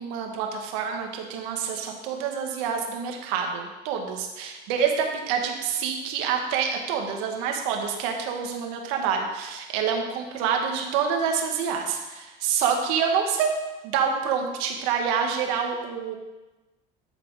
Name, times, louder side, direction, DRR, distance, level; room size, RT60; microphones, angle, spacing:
voice 1, 0.0-13.6 13.8-16.1, right 7 dB, 85° right, 3 dB, 1.8 m, -27 dB
12.0 x 4.4 x 7.3 m, 1.1 s
cardioid pair, 125°, 19 cm